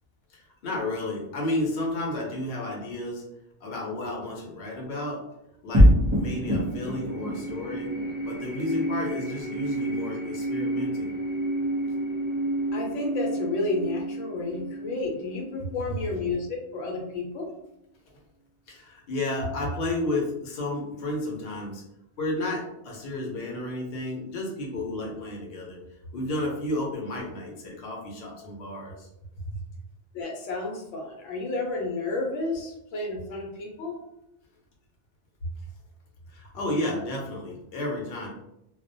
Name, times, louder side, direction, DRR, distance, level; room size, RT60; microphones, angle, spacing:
voice 1, 0.3-3.2 3.6-5.2 5.6-7.9 8.2-11.1 18.7-21.8 22.2-25.8 26.1-29.1 36.3-38.3, left 1 dB, 60° left, -2 dB, 0.9 m, -32 dB
sound 1, 5.7-16.4, equal, 35° right, 0.5 m, -27 dB
voice 2, 12.7-17.5 30.1-34.0, left 3 dB, 85° left, -1 dB, 0.9 m, -31 dB
2.3 x 2.1 x 2.5 m, 0.84 s
omnidirectional pair, 1.2 m